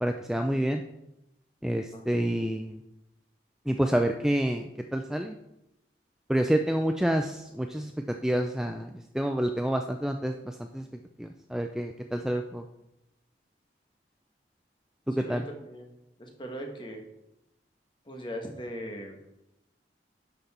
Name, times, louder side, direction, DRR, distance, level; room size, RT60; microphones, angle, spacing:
voice 1, 0.0-0.8 1.6-2.8 3.7-4.7 4.9-5.3 6.3-7.9 8.2-8.9 9.1-10.8 11.2-12.6 15.1-15.4, right 1 dB, 5° right, 5 dB, 0.3 m, -28 dB
voice 2, 15.1-15.9 16.2-17.0 18.1-19.2, equal, 25° left, 3 dB, 1.4 m, -39 dB
10.5 x 6.0 x 4.3 m, 0.89 s
head